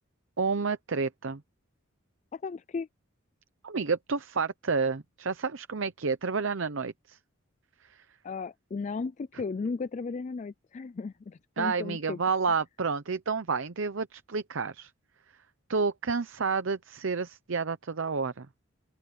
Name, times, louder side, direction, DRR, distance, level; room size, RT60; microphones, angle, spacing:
voice 1, 0.4-1.4 3.6-7.2 7.8-8.0 11.6-14.9 15.7-18.5, right 4 dB, 65° right, 0.7 m, -30 dB
voice 2, 2.3-2.9 8.2-12.2, left 4 dB, 35° left, 0.3 m, -35 dB
open air
head